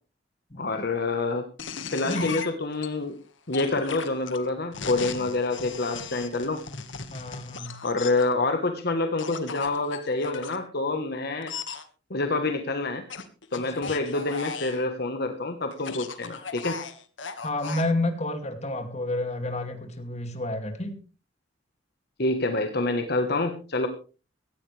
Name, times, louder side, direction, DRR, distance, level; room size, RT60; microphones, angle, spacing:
voice 1, 0.6-1.4 1.9-3.2 3.5-6.6 7.8-11.5 12.1-13.0 13.5-16.8 22.2-23.9, left 2 dB, 55° left, 6 dB, 1.4 m, -27 dB
sound 1, 1.6-2.9 3.5-8.3 9.2-10.6 11.4-11.8 13.1-14.8 15.7-17.9, left 5 dB, 85° left, 1.8 m, -37 dB
voice 2, 2.1-2.5 7.1-7.8 17.4-21.0, left 2 dB, 35° left, 6 dB, 2.6 m, -30 dB
17.0 x 15.0 x 3.4 m, 0.36 s
head